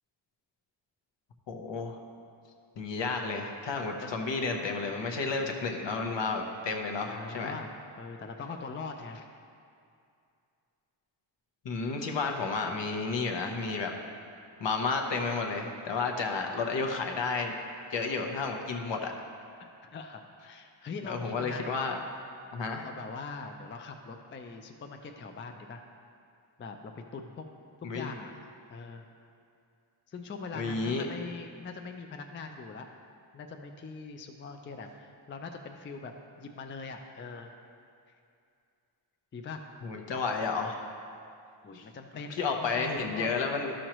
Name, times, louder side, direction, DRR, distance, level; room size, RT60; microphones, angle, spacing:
voice 1, 1.5-2.0 2.8-7.5 11.6-13.9 14.6-17.5 17.9-19.1 21.0-22.0 22.5-22.9 27.8-28.1 30.5-31.1 39.8-40.8 41.7-41.8 42.3-43.7, left 4 dB, 70° left, 3 dB, 0.9 m, -31 dB
voice 2, 6.7-9.3 19.6-21.7 22.8-25.8 26.6-27.5 27.8-29.0 30.1-32.9 33.3-37.5 39.3-39.6 41.6-43.6, left 4 dB, 30° left, 4 dB, 0.3 m, -42 dB
13.0 x 6.2 x 3.0 m, 2.4 s
wide cardioid pair, 180°, 46 cm